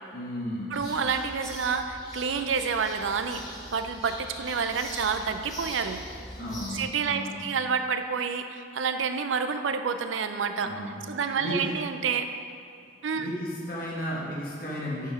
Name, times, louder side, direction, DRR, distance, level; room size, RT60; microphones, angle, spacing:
voice 1, 0.1-0.8 6.4-7.4 10.6-11.0 11.4-11.7 13.1-15.1, equal, 50° left, -6 dB, 1.5 m, -34 dB
sound 1, 0.7-6.8, left 1 dB, 20° left, 1.3 m, -42 dB
voice 2, 0.7-6.0 6.7-10.7 11.1-12.3 13.0-13.3, right 5 dB, 80° right, 8 dB, 0.5 m, -29 dB
6.5 x 5.6 x 5.9 m, 2.3 s
head